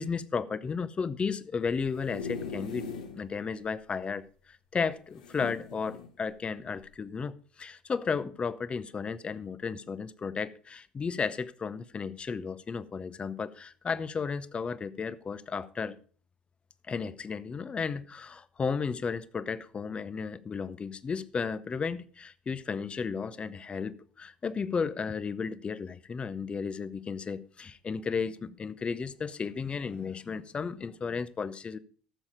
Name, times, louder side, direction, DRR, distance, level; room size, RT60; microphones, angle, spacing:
voice 1, 0.0-16.0 16.9-31.8, left 5 dB, 25° left, 0.7 m, -34 dB
sound 1, 1.7-3.2 3.7-3.8 3.9-4.0 5.2-6.1 6.8-7.0, left 5 dB, 75° left, 1.2 m, -39 dB
13.5 x 7.2 x 5.0 m
figure-of-eight pair, 65°, 4 cm